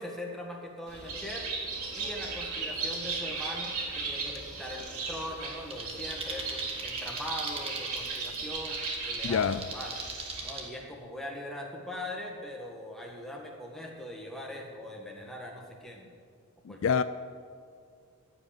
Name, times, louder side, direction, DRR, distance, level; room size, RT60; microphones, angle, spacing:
voice 1, 0.0-1.5 1.9-8.8 9.0-9.9 10.4-16.1 16.7-17.0, left 1 dB, ahead, 1.6 m, -41 dB
Bird, 0.9-10.6, right 4 dB, 85° right, 3.1 m, -36 dB
sound 1, 5.7-10.7, right 3 dB, 25° right, 1.5 m, -41 dB
voice 2, 9.2-9.6 16.6-17.0, left 6 dB, 60° left, 0.4 m, -26 dB
15.0 x 5.6 x 9.0 m
head